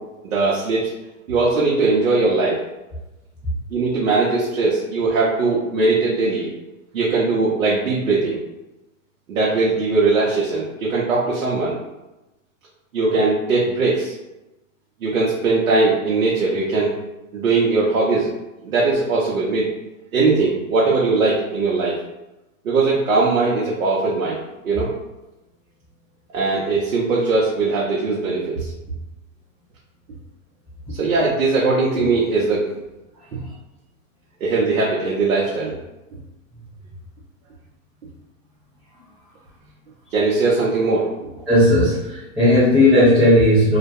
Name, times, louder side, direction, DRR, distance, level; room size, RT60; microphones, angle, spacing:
voice 1, 0.2-0.9 1.3-2.6 3.7-6.5 6.9-8.4 9.3-11.8 12.9-14.1 15.0-16.9 17.3-18.3 18.6-19.7 20.1-22.0 22.6-24.9 26.3-28.7 30.9-32.7 33.3-33.4 34.4-35.7 40.1-41.1, right 3 dB, 85° right, -5 dB, 0.7 m, -20 dB
voice 2, 41.5-43.8, left 1 dB, 5° right, -14 dB, 0.3 m, -15 dB
2.3 x 2.2 x 2.6 m, 1.0 s
hypercardioid pair, 120°, 40 cm